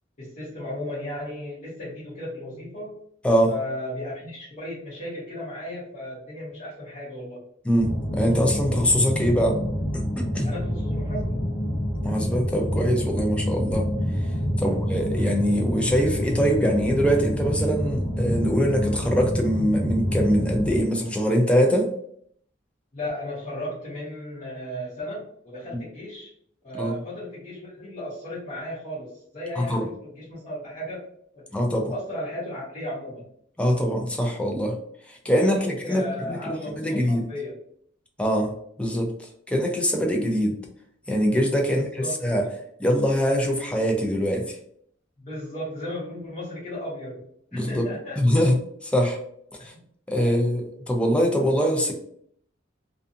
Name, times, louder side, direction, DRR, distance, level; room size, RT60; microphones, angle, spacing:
voice 1, 0.2-2.9 3.5-7.4 10.4-11.4 14.5-14.8 22.9-26.3 26.6-31.0 31.3-31.4 31.9-33.3 35.4-37.6 41.7-42.5 45.2-47.2 47.5-48.2 49.6-49.8 50.2-50.4, left 1 dB, 45° left, -10 dB, 1.0 m, -35 dB
voice 2, 7.6-9.6 9.9-10.5 12.0-13.9 14.6-21.9 26.8-27.0 29.6-29.9 31.5-31.9 33.6-34.8 35.1-37.2 38.2-38.5 38.8-40.6 41.1-42.4 42.8-44.6 47.5-47.8 48.2-48.6 48.8-49.2 49.6-49.7 50.1-51.9, equal, 5° left, 2 dB, 0.4 m, -23 dB
sound 1, 7.8-20.8, equal, 90° left, 0.8 m, -27 dB
2.5 x 2.4 x 2.5 m, 0.65 s
head